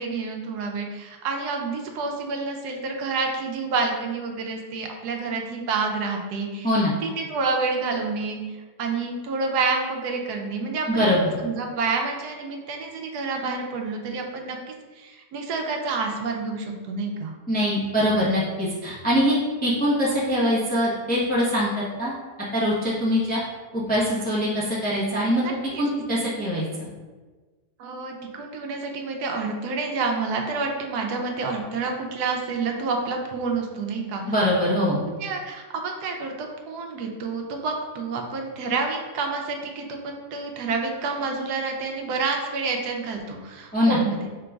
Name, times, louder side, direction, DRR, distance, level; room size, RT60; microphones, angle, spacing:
voice 1, 0.0-6.7 7.0-8.4 8.8-11.1 11.4-14.6 15.0-17.3 25.4-25.8 27.8-34.2 35.0-44.3, right 4 dB, 75° right, 2 dB, 1.1 m, -28 dB
voice 2, 6.6-6.9 10.9-11.3 17.5-19.4 19.6-22.1 22.5-23.4 23.7-26.7 34.3-35.0 43.7-44.0, equal, 10° left, -7 dB, 0.4 m, -23 dB
4.9 x 3.7 x 2.3 m, 1.4 s
omnidirectional pair, 1.8 m